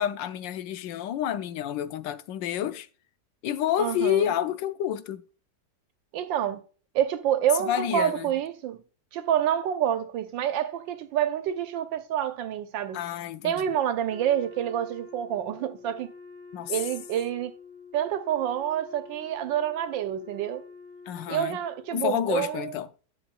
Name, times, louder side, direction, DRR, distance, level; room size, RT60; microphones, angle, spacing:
voice 1, 0.0-2.9 3.4-5.2 7.6-8.3 12.9-13.6 16.5-16.7 21.1-21.6 21.9-22.9, left 10 dB, 80° left, 1.3 m, -29 dB
voice 2, 3.8-4.3 6.1-6.6 6.9-8.8 9.1-13.0 13.4-16.1 16.7-17.5 17.9-20.6 21.3-22.7, right 10 dB, 90° right, 1.5 m, -28 dB
Wind instrument woodwind instrument, 14.1-22.0, left 4 dB, 15° right, 1.4 m, -47 dB
10.0 x 6.9 x 2.3 m
omnidirectional pair, 2.0 m